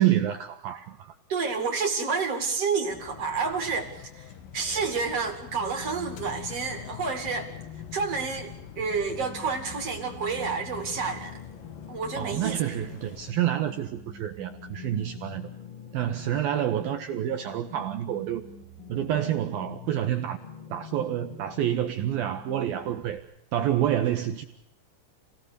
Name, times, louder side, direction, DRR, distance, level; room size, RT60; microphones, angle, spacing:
voice 1, 0.0-1.1 12.2-15.5 15.9-18.5 18.9-20.4 20.7-23.3 23.5-24.4, right 11 dB, 80° right, 2.1 m, -28 dB
voice 2, 1.3-4.2 4.5-7.5 7.9-11.4 11.9-12.6, right 5 dB, 40° right, 2.5 m, -29 dB
sound 1, 2.9-13.3, left 8 dB, 60° left, 2.5 m, -46 dB
sound 2, 5.5-23.2, left 7 dB, 35° left, 3.1 m, -45 dB
28.5 x 18.5 x 6.8 m
omnidirectional pair, 5.6 m